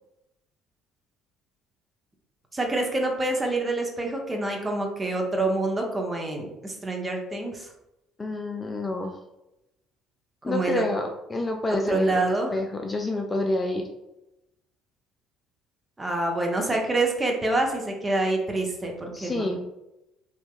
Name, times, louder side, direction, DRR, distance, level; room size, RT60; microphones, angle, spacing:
voice 1, 2.5-7.7 10.5-10.8 11.9-12.5 16.0-19.5, right 2 dB, 20° right, 1 dB, 0.7 m, -26 dB
voice 2, 8.2-9.2 10.4-13.9 19.1-19.6, left 2 dB, 25° left, 3 dB, 0.4 m, -28 dB
3.4 x 2.9 x 2.4 m, 0.91 s
figure-of-eight pair, 55°, 0 cm